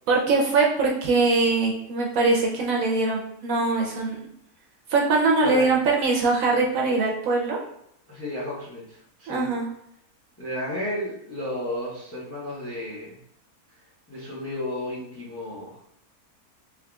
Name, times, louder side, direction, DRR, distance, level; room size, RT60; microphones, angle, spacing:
voice 1, 0.1-4.3 4.9-7.6 9.3-9.7, right 3 dB, 65° right, -1 dB, 1.0 m, -22 dB
voice 2, 8.1-9.5 10.4-13.2 14.1-15.7, left 1 dB, 15° left, -6 dB, 0.7 m, -32 dB
3.7 x 3.1 x 2.3 m, 0.75 s
omnidirectional pair, 1.7 m